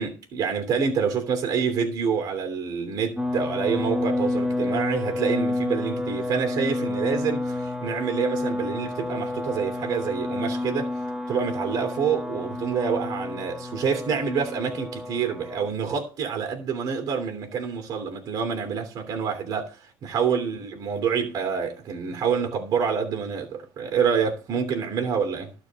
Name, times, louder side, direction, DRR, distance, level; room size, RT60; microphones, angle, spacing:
voice 1, 0.0-10.9 11.3-25.5, right 6 dB, 50° right, 3.0 m, -27 dB
sound 1, 3.2-15.7, left 2 dB, 5° right, 1.5 m, -29 dB
12.5 x 4.5 x 7.4 m
supercardioid pair, 90°, 8 cm